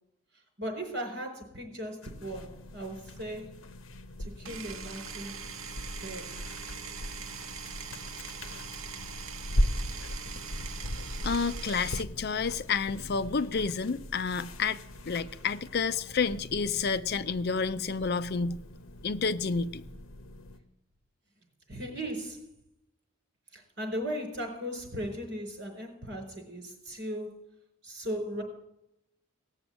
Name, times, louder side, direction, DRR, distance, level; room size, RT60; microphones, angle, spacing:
voice 1, 0.3-3.6 4.2-5.4 6.0-6.5 15.2-15.4 21.7-22.5 23.5-27.5 27.8-28.4, equal, 50° right, 4.6 m, -38 dB
sound 1, 2.0-20.6, equal, 75° left, 1.0 m, -38 dB
Power tool, 4.4-12.0, right 7 dB, 75° right, 0.9 m, -42 dB
voice 2, 11.2-14.8 15.1-18.6 19.0-19.8, left 5 dB, 50° left, 0.5 m, -30 dB
17.5 x 7.1 x 8.7 m
head